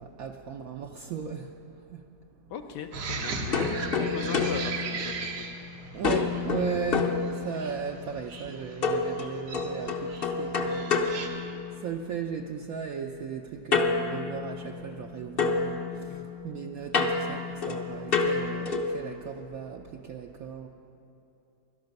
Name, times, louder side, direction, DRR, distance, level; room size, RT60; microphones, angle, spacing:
voice 1, 0.0-2.0 5.9-11.3 11.7-20.7, right 7 dB, 65° right, 2 dB, 1.0 m, -37 dB
voice 2, 2.5-5.5 16.1-16.3, left 7 dB, 75° left, 5 dB, 1.3 m, -39 dB
sound 1, 2.9-11.3, right 4 dB, 85° right, 1.9 m, -38 dB
sound 2, 3.5-5.6 6.0-7.9 8.8-12.0 13.7-15.1 15.4-19.0, left 4 dB, 45° left, 0.8 m, -29 dB
17.5 x 12.5 x 5.3 m, 2.9 s
omnidirectional pair, 1.9 m